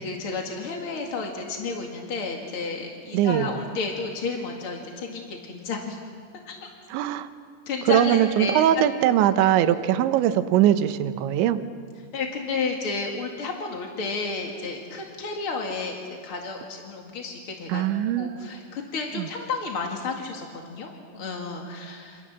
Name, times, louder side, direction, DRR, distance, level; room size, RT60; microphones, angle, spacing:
voice 1, 0.0-6.0 6.5-6.7 7.7-8.6 9.6-9.8 12.1-16.0 16.2-17.8 18.2-22.2, left 4 dB, 45° left, 1 dB, 2.0 m, -32 dB
voice 2, 3.1-3.6 6.9-7.3 7.9-11.6 17.7-18.3 19.1-19.3, right 11 dB, 80° right, 10 dB, 3.3 m, -21 dB
28.0 x 27.5 x 7.5 m, 2.1 s
omnidirectional pair, 5.3 m